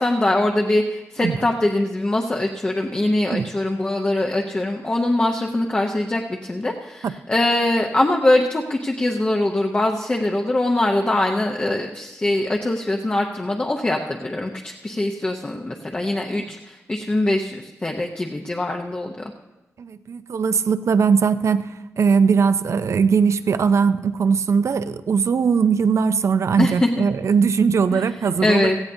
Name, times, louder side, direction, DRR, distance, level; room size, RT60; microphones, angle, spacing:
voice 1, 0.0-19.1 26.6-27.0 27.9-28.0 28.4-28.8, left 1 dB, 20° left, 1 dB, 0.7 m, -22 dB
voice 2, 19.8-21.7 22.0-28.7, right 6 dB, 60° right, 12 dB, 0.5 m, -20 dB
17.0 x 14.5 x 2.7 m, 1.1 s
wide cardioid pair, 135°, 6 cm